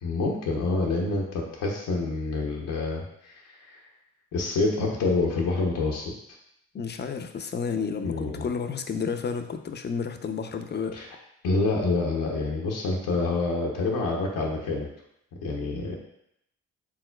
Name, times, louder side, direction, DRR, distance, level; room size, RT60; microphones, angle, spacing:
voice 1, 0.0-3.8 4.3-6.1 8.0-8.5 10.9-11.1 11.4-14.9 15.4-16.0, left 3 dB, 70° left, -2 dB, 0.8 m, -27 dB
voice 2, 6.7-11.0, left 6 dB, 30° left, 7 dB, 0.5 m, -31 dB
4.7 x 3.6 x 2.2 m, 0.77 s
hypercardioid pair, 45°, 34 cm